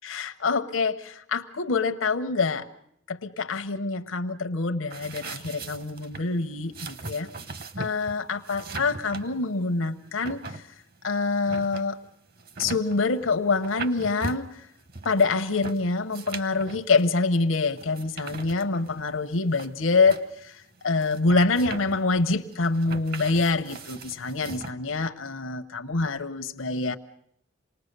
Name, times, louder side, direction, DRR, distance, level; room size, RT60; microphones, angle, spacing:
voice 1, 0.0-2.7 3.1-7.3 7.8-10.6 11.0-12.0 12.6-14.6 15.0-27.0, left 3 dB, 85° left, 7 dB, 0.9 m, -26 dB
sound 1, 4.9-24.7, right 3 dB, 50° right, 1.1 m, -40 dB
27.0 x 19.5 x 6.7 m, 0.72 s
head